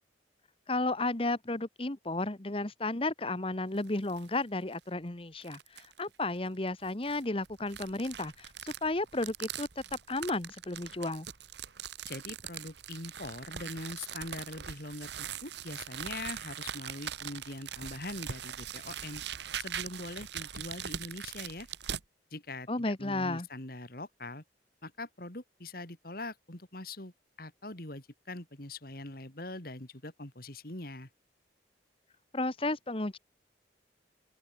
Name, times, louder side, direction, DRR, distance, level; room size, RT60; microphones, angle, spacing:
voice 1, 0.7-9.7 10.1-11.3 22.7-23.5 32.3-33.2, left 2 dB, 30° left, 1.2 m, -33 dB
sound 1, 3.7-4.3 4.7-4.8 5.4-6.0 6.8-22.0, right 9 dB, 70° right, 1.2 m, -42 dB
voice 2, 12.1-19.2 19.6-21.7 22.3-24.4 24.8-27.1 27.4-31.1, left 2 dB, 55° left, 3.1 m, -42 dB
open air
head